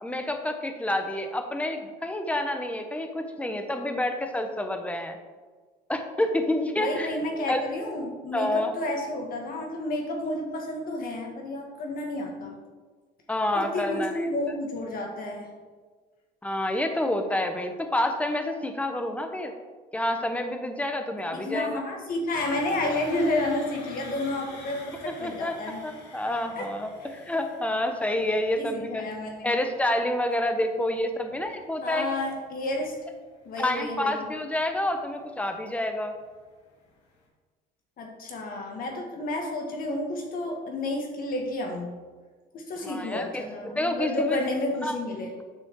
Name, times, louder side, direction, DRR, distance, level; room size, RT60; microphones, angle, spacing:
voice 1, 0.0-5.2 5.9-7.1 7.5-7.6 8.3-8.7 13.3-14.3 16.4-19.5 19.9-21.8 25.1-25.6 25.8-29.0 29.4-32.1 33.6-36.1 42.8-44.4 44.8-45.0, left 1 dB, 10° left, 6 dB, 0.9 m, -28 dB
voice 2, 6.8-12.6 13.5-15.5 21.3-25.8 26.6-26.7 27.0-27.1 28.6-29.6 31.8-32.9 33.4-34.3 38.0-42.0 42.5-45.3, left 1 dB, 55° left, 2 dB, 1.8 m, -31 dB
sound 1, 22.3-36.4 36.7-36.9 37.2-37.3, left 3 dB, 80° left, 2.2 m, -47 dB
8.8 x 6.1 x 3.7 m, 1.4 s
cardioid pair, 110°, 17 cm